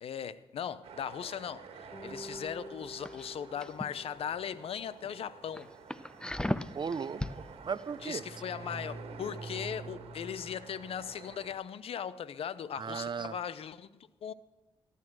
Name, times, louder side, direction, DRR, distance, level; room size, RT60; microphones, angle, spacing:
voice 1, 0.0-5.7 8.0-14.3, left 8 dB, 80° left, 0.6 m, -39 dB
sound 1, 0.8-11.5, right 4 dB, 90° right, 1.6 m, -48 dB
sound 2, 1.9-4.5, right 1 dB, 45° left, 3.2 m, -48 dB
sound 3, 3.0-3.9 4.3-4.6 5.0-5.1 5.6-7.4 7.8-7.9, left 1 dB, 10° left, 0.7 m, -36 dB
voice 2, 6.7-8.2 12.8-13.4, right 6 dB, 50° right, 0.6 m, -36 dB
15.0 x 11.0 x 6.1 m
cardioid pair, 50°, 10 cm